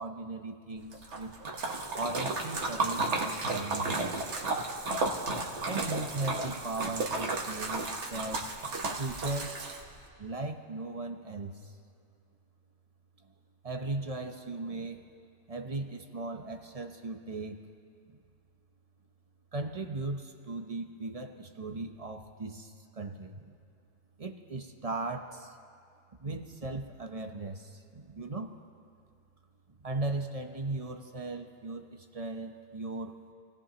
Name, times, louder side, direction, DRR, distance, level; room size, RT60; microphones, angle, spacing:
voice 1, 0.0-1.3 1.9-4.1 5.6-8.5 9.0-9.6 10.2-11.8 13.6-15.0 15.5-17.6 18.1-18.2 19.5-23.5 24.2-25.6 26.2-28.5 29.8-33.2, right 2 dB, 35° right, 5 dB, 0.9 m, -37 dB
Splash splatter, 0.9-10.0, right 3 dB, 90° right, 1.6 m, -33 dB
27.5 x 16.5 x 2.9 m, 2.3 s
omnidirectional pair, 1.2 m